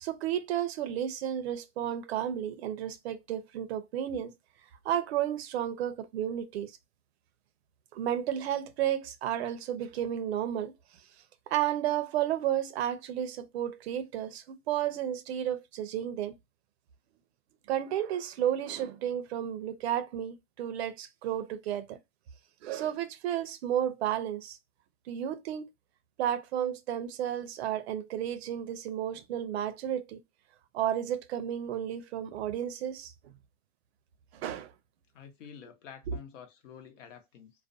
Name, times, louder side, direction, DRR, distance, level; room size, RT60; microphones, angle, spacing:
voice 1, 0.0-4.3 4.8-6.7 7.9-10.7 11.5-16.4 17.7-22.0 22.6-24.6 25.1-25.7 26.2-30.2 30.7-33.1 34.3-34.7 36.1-36.2, right 10 dB, 60° right, 0.5 m, -32 dB
voice 2, 35.1-37.5, left 8 dB, 75° left, 0.8 m, -49 dB
2.4 x 2.1 x 2.5 m
supercardioid pair, 160°, 37 cm